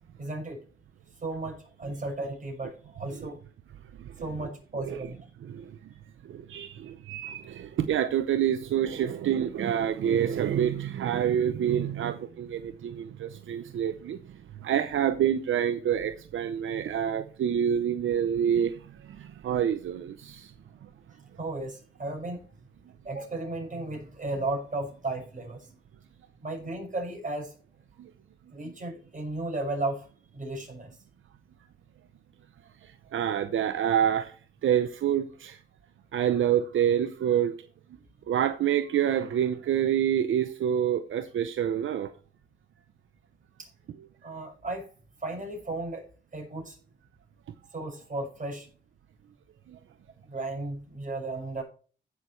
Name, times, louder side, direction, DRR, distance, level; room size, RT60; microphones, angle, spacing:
voice 1, 0.2-0.6 1.2-3.4 4.2-5.3 21.4-22.4 23.0-25.7 26.4-27.6 28.5-30.1 30.3-30.9 43.6-43.7 44.2-44.9 45.2-46.1 46.3-46.8 47.7-48.7 50.3-51.6, right 2 dB, 40° right, 6.3 m, -34 dB
voice 2, 4.0-4.5 4.8-5.0 5.4-5.8 6.2-20.5 20.8-20.9 28.0-28.1 28.6-28.7 32.8-34.4 34.6-35.6 36.1-37.5 38.3-42.1 44.0-44.1 49.7-49.8, right 9 dB, 85° right, 0.7 m, -27 dB
15.5 x 6.4 x 3.2 m
cardioid pair, 65°, 20 cm